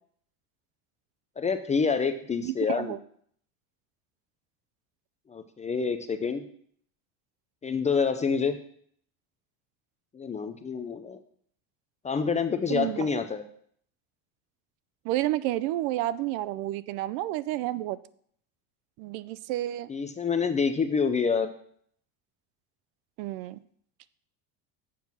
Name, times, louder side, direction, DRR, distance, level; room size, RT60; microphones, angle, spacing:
voice 1, 1.4-3.0 5.3-6.4 7.6-8.6 10.1-11.2 12.0-13.4 19.9-21.5, left 5 dB, 15° left, 8 dB, 0.4 m, -27 dB
voice 2, 2.4-3.0 12.7-13.2 15.0-18.0 19.0-19.9 23.2-23.6, right 15 dB, 70° right, 17 dB, 0.6 m, -30 dB
7.6 x 5.4 x 6.0 m, 0.62 s
supercardioid pair, 125°, 45 cm